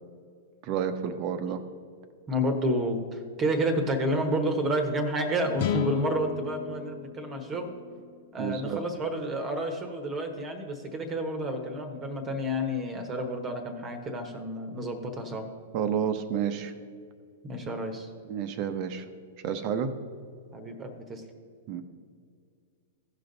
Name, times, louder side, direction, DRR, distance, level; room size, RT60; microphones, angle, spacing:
voice 1, 0.6-1.6 8.4-8.8 15.7-16.7 18.2-19.1 19.4-19.9 21.7-21.8, right 8 dB, 45° right, 9 dB, 0.8 m, -30 dB
voice 2, 2.3-7.8 8.3-15.5 17.4-18.1 20.5-21.2, equal, 25° right, 6 dB, 1.2 m, -30 dB
sound 1, 5.6-8.9, left 9 dB, 55° left, 0.6 m, -34 dB
15.5 x 5.3 x 4.0 m, 2.2 s
hypercardioid pair, 110°, 0 cm